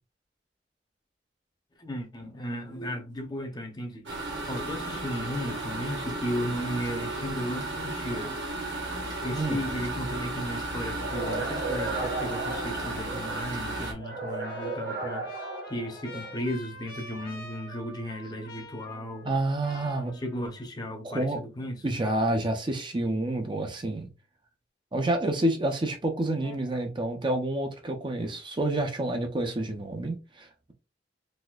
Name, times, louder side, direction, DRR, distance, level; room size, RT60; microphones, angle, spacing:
voice 1, 1.8-8.4 9.2-15.3 15.7-19.3 20.1-21.8 26.4-26.8, left 1 dB, 25° left, 0.7 m, -35 dB
sound 1, 4.1-13.9, right 2 dB, 80° right, 1.2 m, -34 dB
sound 2, 11.0-13.4 14.0-16.4, right 3 dB, 50° right, 1.1 m, -35 dB
Trumpet, 14.4-19.4 19.6-20.6, left 2 dB, 55° left, 0.9 m, -46 dB
voice 2, 19.2-20.2 21.0-21.4 21.8-24.1 24.9-30.7, right 1 dB, 25° right, 0.5 m, -28 dB
4.1 x 2.6 x 2.3 m
head